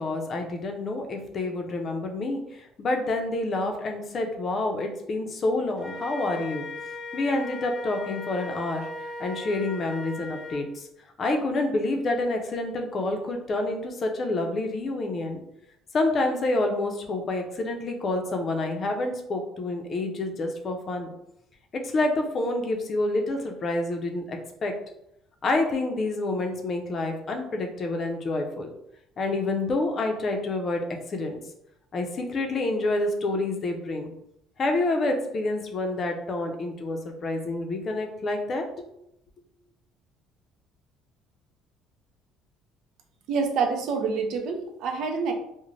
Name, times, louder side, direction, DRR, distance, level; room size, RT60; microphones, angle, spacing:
voice 1, 0.0-6.7 7.1-8.9 9.2-10.9 11.2-15.4 15.9-21.1 21.8-24.7 25.4-28.7 29.2-31.4 31.9-34.1 34.6-38.6, left 2 dB, 35° left, 3 dB, 0.5 m, -28 dB
Wind instrument woodwind instrument, 5.8-10.6, left 2 dB, 25° right, 0.7 m, -38 dB
voice 2, 43.3-45.3, right 5 dB, 65° right, 4 dB, 0.5 m, -27 dB
2.5 x 2.1 x 3.1 m, 0.79 s
cardioid pair, 135°, 0 cm